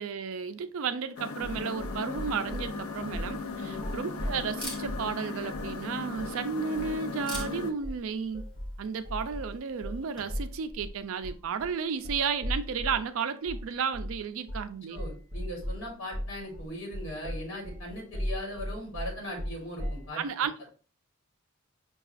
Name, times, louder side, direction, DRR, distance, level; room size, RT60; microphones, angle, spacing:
voice 1, 0.0-8.5 8.8-15.0 20.2-20.7, right 6 dB, 70° right, 0.4 m, -33 dB
sound 1, 1.2-7.7, left 3 dB, 80° left, 0.5 m, -37 dB
sound 2, 1.4-2.7 3.1-3.4 3.7-5.1 5.5-5.8 6.1-6.4 6.7-7.0 7.3-7.6 7.8-13.1 13.5-13.7 13.9-14.2 14.5-14.7 15.0-20.1, equal, 25° right, 1.0 m, -37 dB
Camera, 2.2-10.6, left 1 dB, 20° left, 1.0 m, -48 dB
voice 2, 14.9-20.5, equal, 55° left, 1.4 m, -39 dB
5.7 x 2.3 x 2.4 m
head